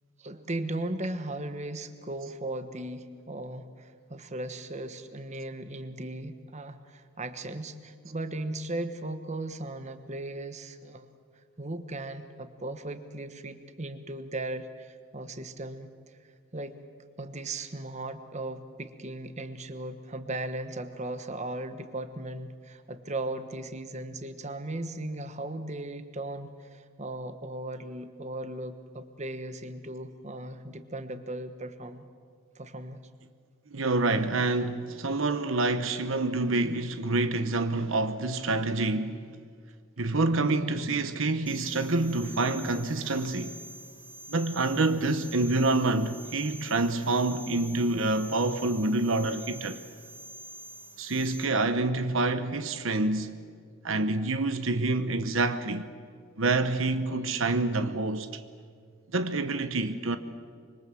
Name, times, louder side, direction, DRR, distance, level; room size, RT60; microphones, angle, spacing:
voice 1, 0.2-11.1 11.6-16.2 16.5-16.7 17.2-32.1 32.5-33.0, right 2 dB, 30° right, 1.2 m, -37 dB
voice 2, 33.7-39.2 40.0-43.6 44.3-49.8 51.0-53.3 53.8-55.9 56.4-58.4 59.1-60.2, right 2 dB, 65° right, 1.0 m, -27 dB
sound 1, 41.5-51.5, right 1 dB, 10° right, 2.9 m, -46 dB
25.5 x 25.0 x 7.7 m
head